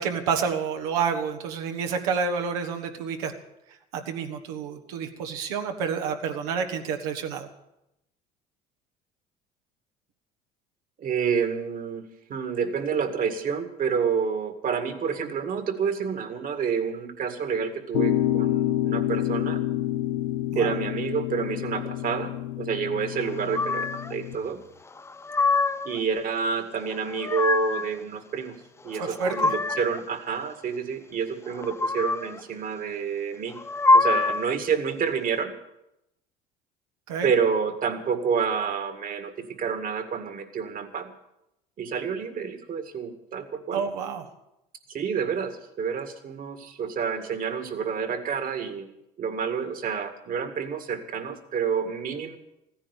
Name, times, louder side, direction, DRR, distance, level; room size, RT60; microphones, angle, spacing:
voice 1, 0.0-3.3 3.9-7.5 20.5-20.7 28.9-29.5 37.1-37.3 43.7-44.3, right 6 dB, 85° right, 5 dB, 1.6 m, -29 dB
voice 2, 11.0-12.0 12.3-19.6 20.6-24.6 25.8-28.6 28.8-33.6 33.9-35.5 37.2-41.1 41.8-43.8 44.9-48.9 49.2-52.4, right 6 dB, 50° right, 8 dB, 2.0 m, -29 dB
sound 1, 17.9-24.4, left 13 dB, 90° left, 0.7 m, -28 dB
sound 2, 23.5-24.1 25.0-26.0 26.9-27.9 28.9-30.0 31.5-32.4 33.5-34.6, left 3 dB, 15° left, 0.6 m, -24 dB
15.0 x 10.0 x 8.2 m, 0.87 s
supercardioid pair, 80°, 18 cm